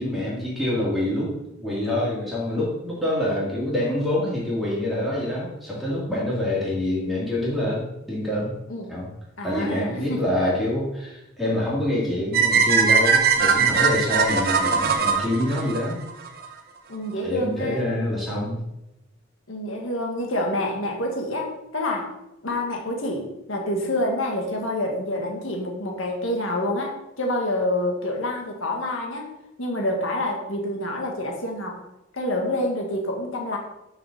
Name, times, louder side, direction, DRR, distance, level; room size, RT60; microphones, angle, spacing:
voice 1, 0.0-1.3 1.6-8.5 8.9-9.1 9.4-16.0 17.2-18.6, left 1 dB, ahead, -7 dB, 2.7 m, -26 dB
voice 2, 9.4-10.2 16.9-17.9 19.5-22.1 22.4-29.3 29.6-31.8 32.1-33.6, left 1 dB, 85° left, 0 dB, 1.6 m, -27 dB
sound 1, 12.3-16.5, right 5 dB, 45° right, 0.9 m, -20 dB
6.3 x 5.0 x 6.5 m, 0.89 s
head